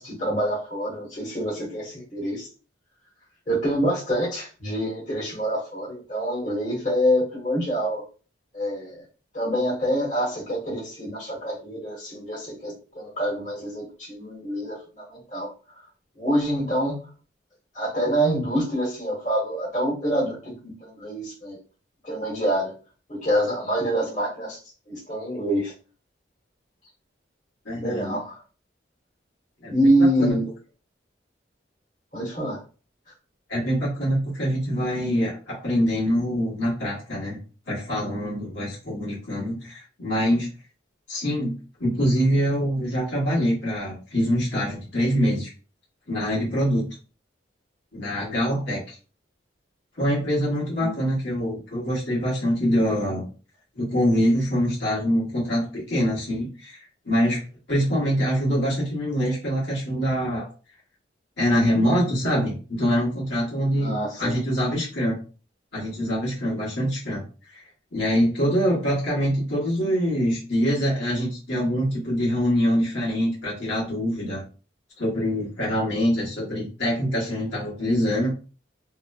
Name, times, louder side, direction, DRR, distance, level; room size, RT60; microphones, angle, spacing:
voice 1, 0.0-2.5 3.5-8.0 8.5-9.0 9.3-15.5 16.2-17.0 17.7-21.6 22.0-22.8 23.1-24.6 24.9-25.7 27.7-28.4 29.7-30.5 32.1-32.6 50.8-50.9 63.8-64.4, equal, 40° left, -6 dB, 1.2 m, -26 dB
voice 2, 27.6-28.2 29.6-30.3 33.5-37.4 37.7-40.5 41.1-41.5 41.8-45.5 46.1-46.9 47.9-49.0 50.0-53.2 53.7-57.4 57.7-60.5 61.4-63.9 64.2-65.2 65.7-67.2 67.5-67.6 67.9-74.4 75.0-78.3, equal, 70° left, -6 dB, 1.2 m, -24 dB
2.9 x 2.0 x 2.3 m, 0.36 s
head